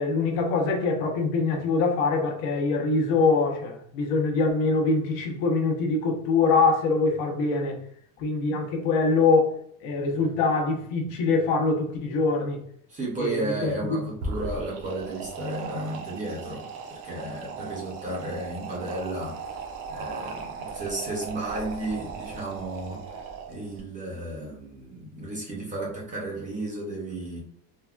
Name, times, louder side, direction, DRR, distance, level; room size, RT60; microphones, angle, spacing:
voice 1, 0.0-7.8 8.2-9.6 9.8-12.6 13.2-14.0, left 3 dB, 65° left, 0.8 m, -24 dB
voice 2, 12.9-19.3 19.9-27.4, right 2 dB, 20° right, 0.5 m, -33 dB
sound 1, 14.1-23.8, right 4 dB, 75° right, 0.7 m, -37 dB
3.5 x 2.1 x 2.3 m
cardioid pair, 170°, 42 cm